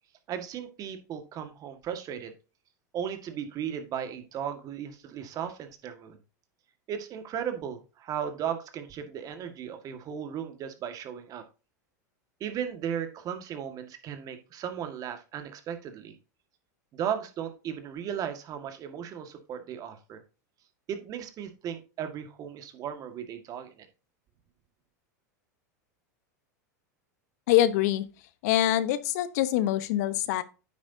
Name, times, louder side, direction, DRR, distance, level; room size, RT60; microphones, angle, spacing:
voice 1, 0.3-2.3 2.9-6.2 6.9-11.4 12.4-16.1 16.9-20.2 20.9-23.7, right 8 dB, 40° right, 1.7 m, -36 dB
voice 2, 27.5-28.0 28.4-30.4, left 13 dB, 65° left, 0.9 m, -24 dB
9.4 x 7.9 x 2.7 m
hypercardioid pair, 105°, 9 cm